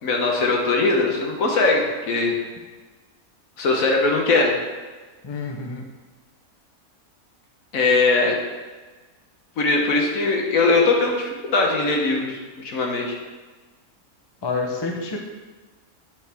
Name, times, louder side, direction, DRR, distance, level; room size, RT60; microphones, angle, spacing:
voice 1, 0.0-2.3 3.6-4.5 7.7-8.4 9.6-13.2, left 3 dB, 65° left, 1 dB, 1.4 m, -20 dB
voice 2, 5.2-5.8 14.4-15.2, left 3 dB, 25° left, 1 dB, 0.5 m, -28 dB
8.2 x 4.8 x 3.5 m, 1.3 s
omnidirectional pair, 1.6 m